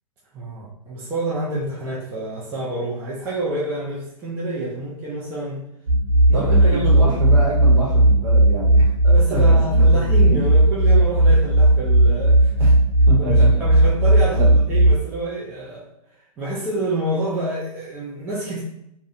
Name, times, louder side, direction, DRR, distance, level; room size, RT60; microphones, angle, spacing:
voice 1, 0.3-5.7 6.3-7.1 9.0-12.5 13.2-15.9 16.4-18.6, right 1 dB, 10° right, -6 dB, 0.3 m, -28 dB
sound 1, 5.9-14.9, right 1 dB, 85° right, 0.5 m, -15 dB
voice 2, 6.3-8.9 9.3-10.5 12.6-12.8 13.1-13.7 14.3-14.5, right 1 dB, 60° right, -3 dB, 1.0 m, -27 dB
2.3 x 2.1 x 2.6 m, 0.78 s
hypercardioid pair, 140°, 19 cm